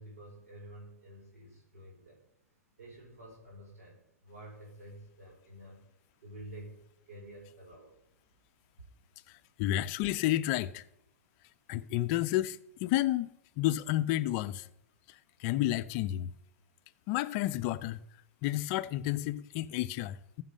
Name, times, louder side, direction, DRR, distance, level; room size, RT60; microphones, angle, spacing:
voice 1, 0.0-2.2 2.8-5.9 6.2-8.0, right 1 dB, 70° right, 4.8 m, -50 dB
voice 2, 9.6-10.8 11.7-13.3 13.6-14.7 15.4-16.3 17.1-18.0 18.4-20.4, left 14 dB, 40° left, 0.5 m, -31 dB
14.0 x 5.8 x 5.2 m
hypercardioid pair, 110°, 9 cm